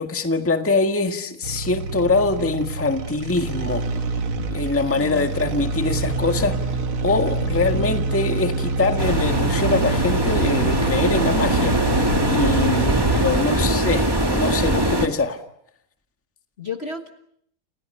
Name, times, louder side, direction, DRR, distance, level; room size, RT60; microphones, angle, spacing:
voice 1, 0.0-3.9 4.5-6.6 7.0-15.4, left 3 dB, 5° left, 6 dB, 1.3 m, -23 dB
sound 1, 1.4-13.5, right 3 dB, 80° right, 2.5 m, -26 dB
sound 2, 3.8-12.2, left 5 dB, 60° left, 2.0 m, -35 dB
voice 2, 5.0-5.7 12.9-13.7 16.6-17.1, left 4 dB, 35° left, 6 dB, 1.5 m, -33 dB
sound 3, 9.0-15.1, right 1 dB, 10° right, 1.8 m, -22 dB
29.5 x 29.5 x 5.6 m, 0.69 s
omnidirectional pair, 2.3 m